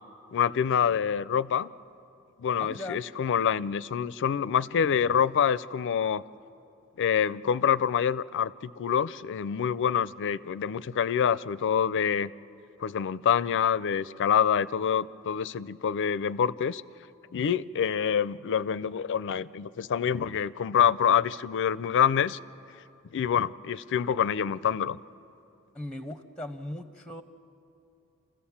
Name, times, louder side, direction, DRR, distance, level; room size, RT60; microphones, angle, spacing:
voice 1, 0.3-1.7 2.4-6.2 7.0-12.3 12.8-16.8 17.3-22.4 23.1-25.0, left 8 dB, 55° left, 18 dB, 0.4 m, -26 dB
voice 2, 2.6-3.0 25.7-27.2, left 1 dB, 5° left, 10 dB, 0.6 m, -38 dB
27.0 x 15.5 x 7.2 m, 2.7 s
head